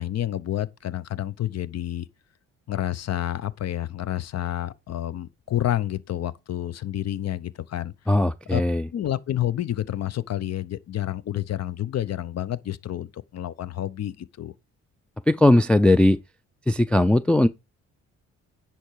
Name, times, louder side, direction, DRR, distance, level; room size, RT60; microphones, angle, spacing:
voice 1, 0.0-2.1 2.7-7.9 8.5-8.6 8.9-14.5, left 12 dB, 55° left, 0.8 m, -29 dB
voice 2, 8.1-8.9 15.3-16.2 16.7-17.5, left 1 dB, 5° left, 0.4 m, -18 dB
10.0 x 4.5 x 4.7 m
cardioid pair, 90°, 30 cm